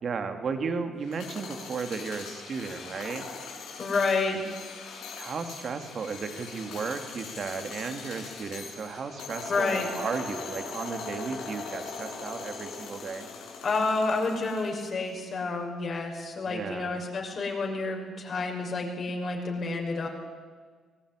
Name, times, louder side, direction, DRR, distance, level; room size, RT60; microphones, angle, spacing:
voice 1, 0.0-3.3 5.2-13.3 16.5-17.0, right 5 dB, 50° right, 7 dB, 2.8 m, -34 dB
sound 1, 1.0-15.1, left 4 dB, 85° left, 5.8 m, -41 dB
voice 2, 3.8-4.4 9.5-9.9 13.6-20.1, left 3 dB, 45° left, 1 dB, 6.1 m, -29 dB
23.5 x 17.5 x 10.0 m, 1.5 s
cardioid pair, 90°, 0 cm